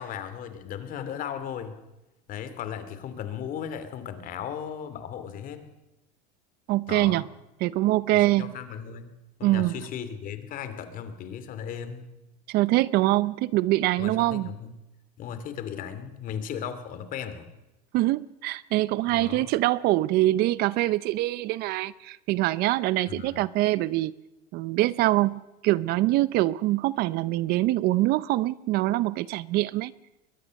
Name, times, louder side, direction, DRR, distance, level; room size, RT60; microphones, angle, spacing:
voice 1, 0.0-1.8 2.3-5.7 6.9-7.2 8.1-12.1 14.0-14.7 15.2-17.5 19.1-19.5 23.1-23.4, left 8 dB, 40° left, 2.7 m, -36 dB
voice 2, 6.7-7.2 7.6-8.5 9.4-9.8 12.5-14.5 17.9-24.1 24.5-29.9, right 17 dB, 50° right, 0.6 m, -24 dB
22.0 x 20.0 x 6.5 m
supercardioid pair, 135°, 21 cm